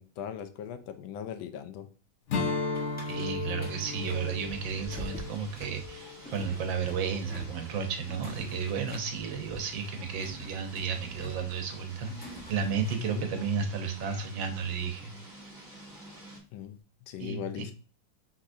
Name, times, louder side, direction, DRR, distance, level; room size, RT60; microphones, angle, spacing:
voice 1, 0.0-1.9 13.0-13.3 16.5-16.8 17.1-17.7, left 9 dB, 75° left, 9 dB, 1.3 m, -39 dB
Strum, 2.3-7.0, left 4 dB, 55° left, 0.8 m, -35 dB
sound 1, 2.7-13.2, right 1 dB, 5° left, 1.0 m, -46 dB
voice 2, 3.1-15.1 17.2-17.6, right 6 dB, 75° right, 6 dB, 1.6 m, -33 dB
sound 2, 3.6-16.4, right 1 dB, 30° right, 1.2 m, -50 dB
5.1 x 4.0 x 2.6 m, 0.39 s
omnidirectional pair, 2.2 m